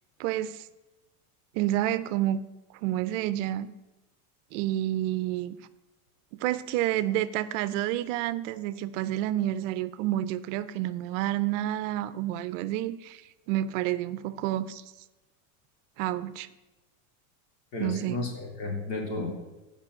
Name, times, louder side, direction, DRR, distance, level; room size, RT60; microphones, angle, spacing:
voice 1, 0.2-0.7 1.5-2.4 2.8-3.7 4.5-5.6 6.4-13.2 13.5-14.8 16.0-16.5 17.8-18.2, right 13 dB, 60° right, 15 dB, 0.6 m, -29 dB
voice 2, 17.7-19.3, left 2 dB, 60° left, 0 dB, 3.2 m, -33 dB
7.4 x 5.4 x 7.5 m, 1.1 s
supercardioid pair, 135°, 43 cm